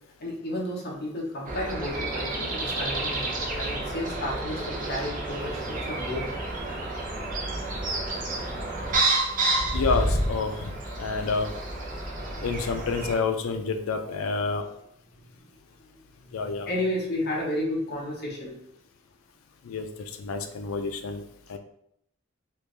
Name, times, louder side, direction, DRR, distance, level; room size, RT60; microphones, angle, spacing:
voice 1, 0.2-6.4 15.2-15.4 15.9-18.6, left 1 dB, 50° left, -2 dB, 0.9 m, -32 dB
sound 1, 1.5-13.1, right 2 dB, 40° right, 0.7 m, -30 dB
voice 2, 9.7-11.5 12.4-14.7 16.3-16.7 19.6-19.9 20.2-21.2 21.5-21.6, left 4 dB, 90° left, 7 dB, 0.4 m, -28 dB
3.4 x 2.5 x 3.2 m, 0.75 s
head